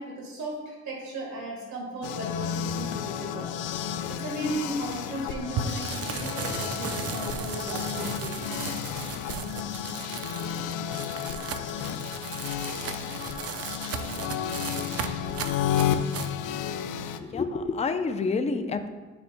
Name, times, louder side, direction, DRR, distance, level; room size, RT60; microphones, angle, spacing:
voice 1, 0.0-3.5 4.1-8.7, right 1 dB, 70° right, -2 dB, 1.6 m, -36 dB
sound 1, 2.0-17.2, left 9 dB, 85° left, 0.5 m, -32 dB
sound 2, 5.6-16.3, right 6 dB, 50° right, 0.6 m, -36 dB
voice 2, 17.2-18.9, left 4 dB, 20° left, 7 dB, 0.5 m, -28 dB
10.5 x 4.1 x 2.2 m, 1.2 s
cardioid pair, 90°, 30 cm